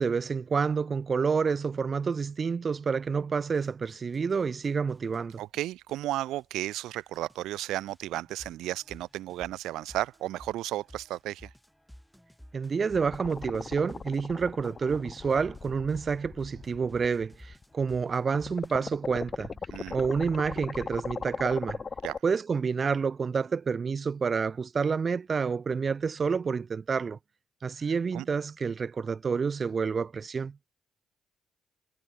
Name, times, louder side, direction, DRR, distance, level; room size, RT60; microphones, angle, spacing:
voice 1, 0.0-5.4 12.5-19.5 19.9-21.8 22.2-27.2 27.6-30.5, right 5 dB, 40° right, 0.5 m, -29 dB
sound 1, 3.4-18.8, equal, ahead, 7.4 m, -54 dB
voice 2, 5.4-11.5 19.7-20.0 22.0-22.2 28.1-28.3, right 15 dB, 90° right, 1.0 m, -34 dB
sound 2, 12.9-17.9 18.3-22.2, left 5 dB, 35° left, 0.9 m, -39 dB
cardioid pair, 90°, 0 cm